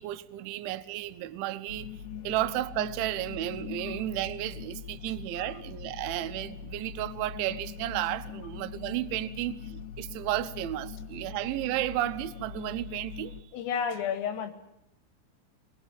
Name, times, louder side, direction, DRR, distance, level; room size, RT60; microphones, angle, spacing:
voice 1, 0.0-1.9 2.2-13.3, right 14 dB, 75° right, 3.3 m, -33 dB
sound 1, 1.7-13.4, left 7 dB, 65° left, 3.2 m, -42 dB
voice 2, 13.5-14.5, left 7 dB, 85° left, 4.8 m, -31 dB
24.0 x 20.5 x 7.4 m
omnidirectional pair, 5.7 m